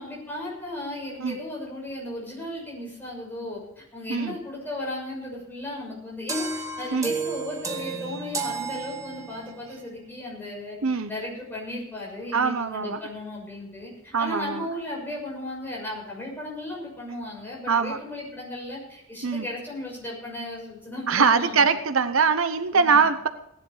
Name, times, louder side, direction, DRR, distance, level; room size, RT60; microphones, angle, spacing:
voice 1, 0.0-10.8 11.1-21.8 22.7-23.0, left 1 dB, 10° left, -4 dB, 6.6 m, -35 dB
sound 1, 6.3-9.6, right 4 dB, 15° right, 1.3 m, -32 dB
voice 2, 12.3-13.0 14.1-14.6 17.7-18.0 19.2-19.5 21.1-23.3, right 5 dB, 75° right, 10 dB, 0.9 m, -22 dB
17.0 x 11.0 x 4.9 m, 0.77 s
head